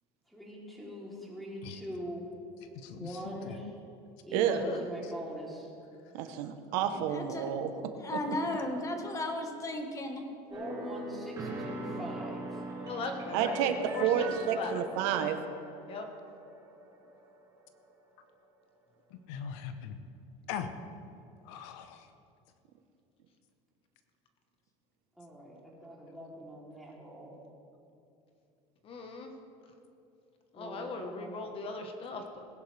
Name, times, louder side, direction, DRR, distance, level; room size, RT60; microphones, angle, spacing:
voice 1, 0.3-2.3 2.9-3.7 4.3-5.7 10.5-12.7 25.2-27.3 30.5-31.5, equal, ahead, -4 dB, 3.3 m, -43 dB
voice 2, 2.8-3.4 19.3-20.0 20.5-20.7 21.4-22.1, left 8 dB, 85° left, 8 dB, 1.0 m, -40 dB
voice 3, 4.6-4.9 12.8-14.9 15.9-16.1 28.8-29.3 30.5-32.5, left 3 dB, 40° left, 4 dB, 1.3 m, -39 dB
voice 4, 6.1-7.7 8.1-8.2 13.3-15.4, right 9 dB, 80° right, 8 dB, 1.1 m, -30 dB
voice 5, 7.1-7.6 8.0-10.2, left 1 dB, 20° left, 4 dB, 1.5 m, -35 dB
sound 1, 10.5-18.1, right 2 dB, 25° right, 3.6 m, -41 dB
19.5 x 10.5 x 3.4 m, 2.7 s
cardioid pair, 135°, 15 cm